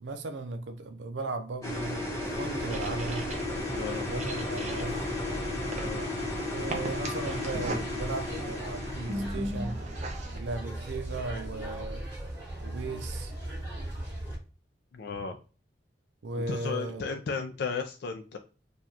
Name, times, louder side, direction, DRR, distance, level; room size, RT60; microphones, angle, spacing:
voice 1, 0.0-2.0 2.4-3.3 4.1-5.1 6.4-9.8 10.3-12.0 12.6-13.3 16.2-17.2, right 3 dB, 75° right, 0.5 m, -36 dB
sound 1, 1.6-9.3, left 2 dB, 15° left, 1.0 m, -34 dB
sound 2, 2.2-14.4, right 1 dB, 10° right, 1.8 m, -39 dB
sound 3, 2.7-10.4, right 1 dB, 40° right, 0.7 m, -40 dB
voice 2, 3.7-4.1 5.8-6.1 14.9-15.4 16.5-18.4, left 5 dB, 65° left, 0.4 m, -34 dB
4.7 x 2.3 x 2.7 m
head